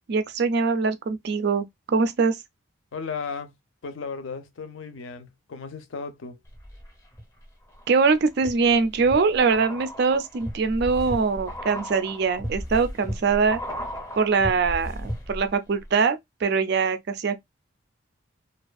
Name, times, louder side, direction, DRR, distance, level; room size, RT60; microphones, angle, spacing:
voice 1, 0.1-2.4 7.9-13.6 14.2-17.4, right 4 dB, 50° right, 0.4 m, -23 dB
voice 2, 2.9-3.5 3.8-6.4, left 5 dB, 70° left, 0.5 m, -35 dB
sound 1, 6.5-7.2 7.7-15.6 15.8-15.9, equal, 15° left, 0.6 m, -35 dB
2.5 x 2.3 x 2.3 m
head